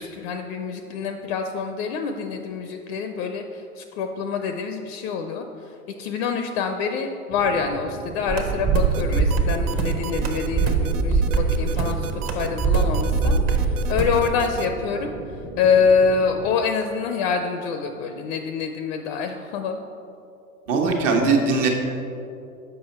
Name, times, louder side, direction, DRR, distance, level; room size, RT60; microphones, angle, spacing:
voice 1, 0.0-19.8, left 5 dB, 45° left, 6 dB, 0.4 m, -26 dB
sound 1, 7.3-16.5, right 3 dB, 15° right, 0.5 m, -37 dB
sound 2, 8.3-14.2, right 4 dB, 30° right, 0.9 m, -22 dB
sound 3, 8.9-14.7, right 8 dB, 75° right, 0.5 m, -34 dB
voice 2, 20.7-21.7, right 4 dB, 55° right, 1 dB, 1.2 m, -20 dB
6.8 x 5.2 x 4.2 m, 2.7 s
hypercardioid pair, 95°, 45 cm